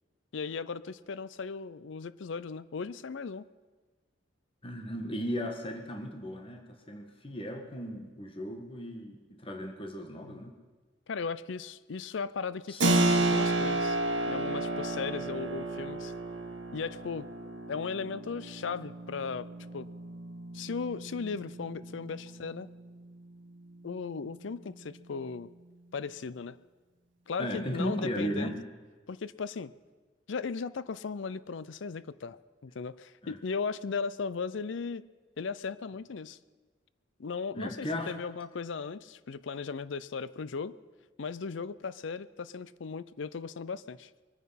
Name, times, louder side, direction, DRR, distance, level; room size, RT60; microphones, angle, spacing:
voice 1, 0.3-3.5 10.2-10.5 11.1-14.0 14.3-16.1 16.7-17.3 17.7-19.9 20.5-22.7 23.8-25.5 25.9-26.6 27.3-28.6 29.1-29.7 30.3-35.0 35.4-36.4 37.2-40.8 41.2-44.1, left 5 dB, 70° left, 17 dB, 0.5 m, -37 dB
voice 2, 4.6-10.5 12.7-12.8 27.4-28.6 33.2-33.4 37.5-38.1, equal, 30° left, 3 dB, 1.6 m, -36 dB
Keyboard (musical), 12.8-23.2, right 2 dB, 65° right, 1.5 m, -32 dB
23.0 x 9.4 x 5.8 m, 1.3 s
head